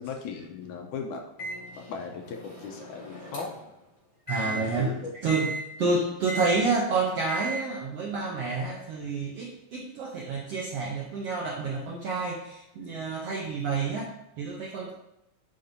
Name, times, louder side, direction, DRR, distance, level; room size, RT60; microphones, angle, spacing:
voice 1, 0.0-1.3 1.8-3.5 4.4-5.1 5.8-5.9, left 5 dB, 75° left, 2 dB, 2.0 m, -37 dB
Microwave oven, 1.4-3.7 4.3-4.6 5.3-5.6 6.3-6.6 7.3-7.6, right 2 dB, 25° left, 2.4 m, -36 dB
voice 2, 4.3-14.9, right 4 dB, 75° right, -1 dB, 1.4 m, -29 dB
11.0 x 5.7 x 2.7 m, 0.87 s
omnidirectional pair, 3.9 m